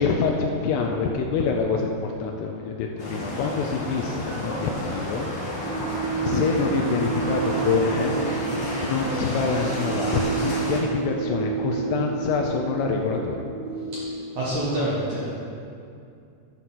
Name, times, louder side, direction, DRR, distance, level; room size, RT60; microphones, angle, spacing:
voice 1, 0.0-5.3 5.9-8.2 8.8-13.4, left 5 dB, 80° left, 1 dB, 2.5 m, -26 dB
sound 1, 3.0-10.8, equal, 50° left, 1.3 m, -31 dB
sound 2, 5.6-14.1, right 5 dB, 85° right, 1.5 m, -30 dB
voice 2, 13.9-15.4, right 1 dB, 65° right, -8 dB, 2.0 m, -27 dB
11.5 x 6.1 x 4.2 m, 2.5 s
omnidirectional pair, 5.1 m